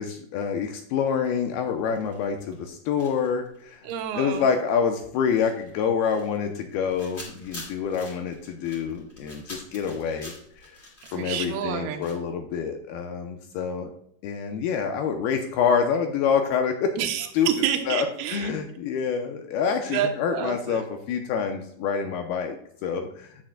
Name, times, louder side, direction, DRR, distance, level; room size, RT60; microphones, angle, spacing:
voice 1, 0.0-3.8 4.2-10.3 10.6-10.7 11.1-13.9 14.2-16.9 17.3-17.5 17.9-22.6 22.8-23.3, left 6 dB, 85° left, 5 dB, 2.2 m, -27 dB
sound 1, 0.9-2.7 3.0-12.2, left 1 dB, 35° left, 1.0 m, -46 dB
voice 2, 3.8-4.5 11.1-12.0 17.0-18.5 19.8-20.8, right 9 dB, 75° right, 4 dB, 2.5 m, -29 dB
10.0 x 8.8 x 2.2 m, 0.69 s
omnidirectional pair, 5.1 m